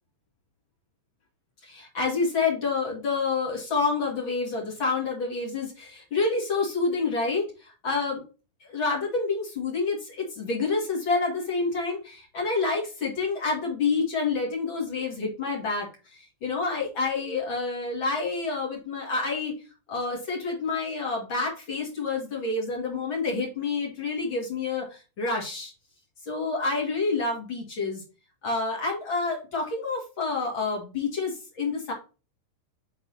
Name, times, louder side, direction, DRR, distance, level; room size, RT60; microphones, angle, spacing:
voice 1, 1.6-8.2 8.6-19.5 19.9-25.7 26.2-28.0 28.4-31.9, left 4 dB, 45° left, -1 dB, 1.6 m, -28 dB
6.9 x 4.2 x 4.2 m, 0.32 s
omnidirectional pair, 5.6 m